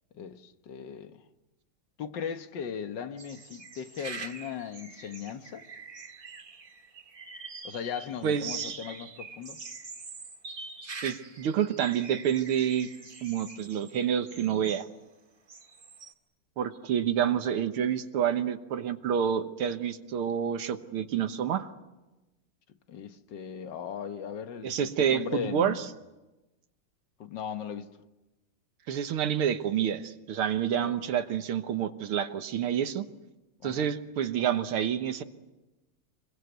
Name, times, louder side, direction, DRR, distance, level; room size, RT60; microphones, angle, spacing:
voice 1, 0.1-1.2 2.0-5.7 7.6-9.6 22.9-25.8 27.2-27.9 30.8-30.9 33.6-33.9, left 7 dB, 60° left, 1.8 m, -38 dB
sound 1, 3.2-14.9 15.5-16.1, right 4 dB, 40° right, 2.4 m, -45 dB
voice 2, 8.2-8.8 11.0-12.9 13.2-14.9 16.6-21.7 24.6-25.9 28.9-33.1 33.6-35.2, right 9 dB, 80° right, 2.0 m, -28 dB
26.5 x 22.0 x 8.1 m
omnidirectional pair, 2.4 m